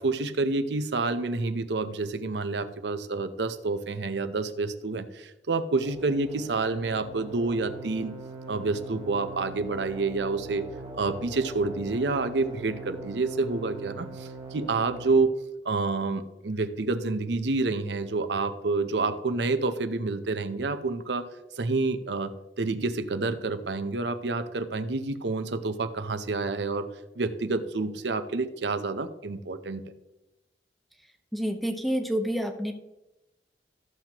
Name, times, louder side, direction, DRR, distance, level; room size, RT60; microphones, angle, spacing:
voice 1, 0.0-8.2 8.5-10.6 10.9-15.3 15.6-21.3 21.6-26.9 27.2-29.8, right 3 dB, 85° right, 10 dB, 0.7 m, -28 dB
sound 1, 5.8-15.2, right 3 dB, 30° right, 1.1 m, -42 dB
voice 2, 31.3-32.7, equal, ahead, 5 dB, 0.9 m, -28 dB
13.5 x 7.4 x 3.0 m, 0.97 s
head